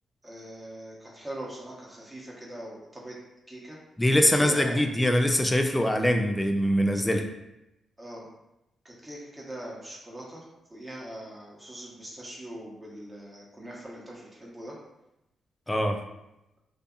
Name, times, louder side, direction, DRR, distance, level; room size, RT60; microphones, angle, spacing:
voice 1, 0.2-3.1 3.5-3.8 4.4-4.8 8.0-8.3 8.8-10.4 10.7-14.7, right 1 dB, 20° right, -4 dB, 0.9 m, -42 dB
voice 2, 4.0-7.3 15.7-16.0, equal, 15° left, 4 dB, 0.4 m, -23 dB
2.5 x 2.4 x 2.3 m, 0.90 s
hypercardioid pair, 40°, 0 cm